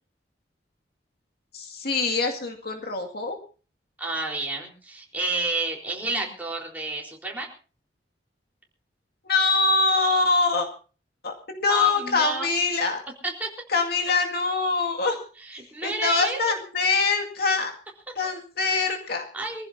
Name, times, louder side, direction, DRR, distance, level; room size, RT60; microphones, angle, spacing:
voice 1, 1.5-3.4 9.2-10.7 11.2-13.0 13.7-15.2 15.8-17.7 18.2-19.2, left 3 dB, 60° left, 2 dB, 2.2 m, -24 dB
voice 2, 4.0-7.5 11.7-12.5 13.2-13.5 15.4-16.4 18.7-18.8 19.3-19.7, right 3 dB, 10° right, -2 dB, 4.1 m, -30 dB
24.5 x 15.0 x 2.7 m, 0.36 s
head